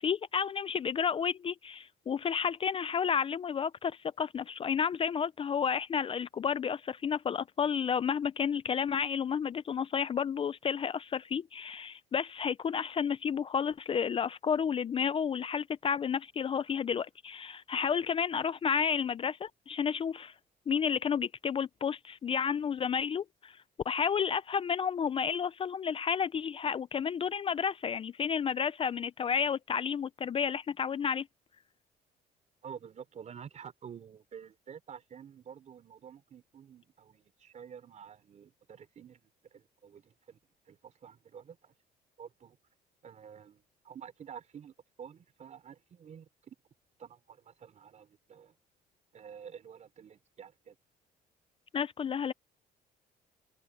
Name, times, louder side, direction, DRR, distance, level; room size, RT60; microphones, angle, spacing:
voice 1, 0.0-20.3 20.7-23.6 23.9-31.3 51.7-52.3, left 7 dB, 30° left, 0.5 m, -31 dB
voice 2, 32.6-40.4 40.7-41.7 42.2-42.6 43.0-46.6 47.0-48.5 49.1-50.8, right 7 dB, 45° right, 3.6 m, -50 dB
cardioid pair, 110°, 17 cm